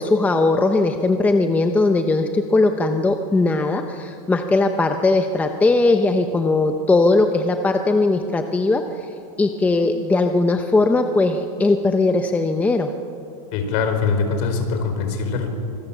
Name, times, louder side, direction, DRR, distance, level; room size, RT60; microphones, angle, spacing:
voice 1, 0.0-9.1 9.4-12.9, left 3 dB, 10° left, 6 dB, 0.8 m, -19 dB
voice 2, 13.5-15.5, left 5 dB, 45° left, 6 dB, 4.6 m, -22 dB
25.5 x 24.0 x 7.3 m, 2.7 s
supercardioid pair, 155°, 18 cm